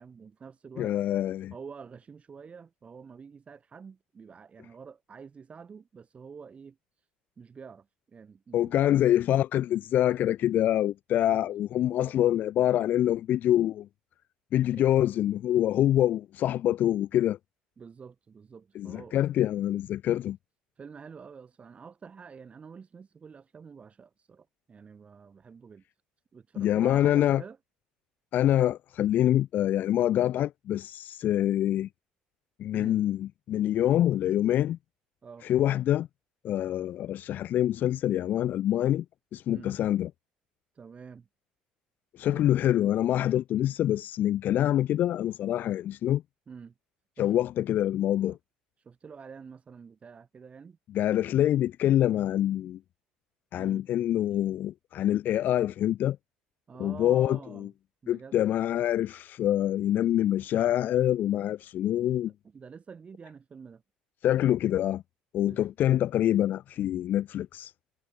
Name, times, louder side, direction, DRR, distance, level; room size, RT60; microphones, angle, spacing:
voice 1, 0.0-1.0 1.5-7.1 7.4-8.9 11.1-11.4 11.8-12.2 14.7-14.9 17.8-19.2 20.8-25.8 26.3-27.6 32.7-33.0 35.2-35.5 39.5-39.7 40.7-41.3 42.3-42.6 46.5-46.7 47.2-47.4 48.3-48.4 48.8-50.8 53.6-53.8 56.7-57.7 58.0-58.4 62.2-63.8 65.4-65.6, right 6 dB, 35° right, 7.0 m, -48 dB
voice 2, 0.8-1.5 8.5-13.9 14.5-17.4 18.8-20.4 26.6-27.4 28.3-31.9 32.6-34.8 35.4-36.1 36.4-39.0 39.3-40.1 42.1-46.2 47.2-48.4 50.9-52.8 53.5-56.2 56.8-57.7 58.1-62.3 64.2-65.0 65.3-67.7, left 12 dB, 55° left, 0.4 m, -25 dB
supercardioid pair, 75°, 4 cm